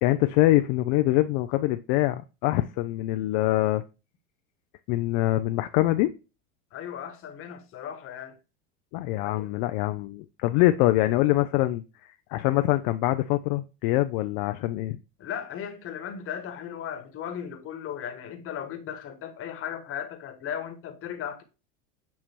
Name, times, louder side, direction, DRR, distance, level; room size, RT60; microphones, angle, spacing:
voice 1, 0.0-3.8 4.9-6.1 8.9-15.0, left 16 dB, 60° left, 0.5 m, -24 dB
voice 2, 6.7-8.4 9.2-9.5 15.2-21.4, left 9 dB, 40° left, 1.3 m, -36 dB
7.4 x 2.9 x 4.5 m
supercardioid pair, 115°, 34 cm